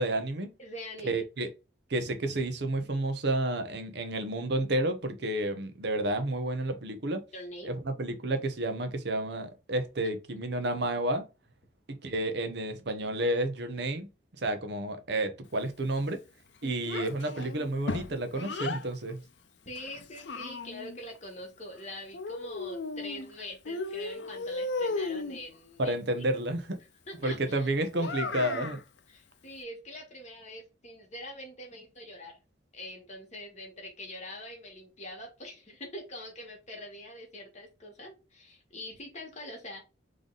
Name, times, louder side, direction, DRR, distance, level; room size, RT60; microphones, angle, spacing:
voice 1, 0.0-0.5 1.0-1.5 1.9-7.2 7.6-11.2 12.0-14.1 14.4-16.2 16.6-19.2 25.8-26.8 27.2-28.8, right 1 dB, 60° right, 0.9 m, -30 dB
voice 2, 0.6-1.2 7.3-7.8 16.6-16.7 19.7-25.9 27.1-27.7 29.1-32.4 32.7-39.8, left 1 dB, 40° left, 1.9 m, -44 dB
Child speech kid speaking, 16.9-18.8 19.8-21.0 22.1-23.3 23.6-25.4 27.9-28.8, left 3 dB, 70° left, 0.7 m, -35 dB
3.8 x 3.4 x 3.9 m
head